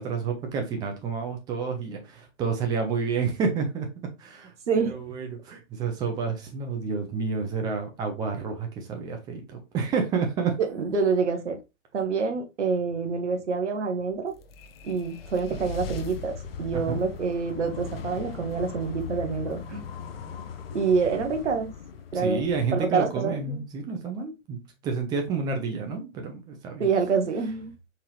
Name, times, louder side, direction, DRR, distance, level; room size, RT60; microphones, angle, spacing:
voice 1, 0.0-3.9 4.2-10.6 16.7-17.0 22.1-26.9, right 5 dB, 10° right, 0.6 m, -29 dB
voice 2, 4.7-5.0 10.6-11.6 11.9-14.3 14.8-19.8 20.7-21.7 22.1-22.4 22.7-23.6 26.8-27.7, right 5 dB, 60° right, 1.1 m, -27 dB
sound 1, 14.1-23.4, left 6 dB, 45° left, 0.7 m, -39 dB
4.5 x 3.6 x 3.1 m
figure-of-eight pair, 115°, 40 cm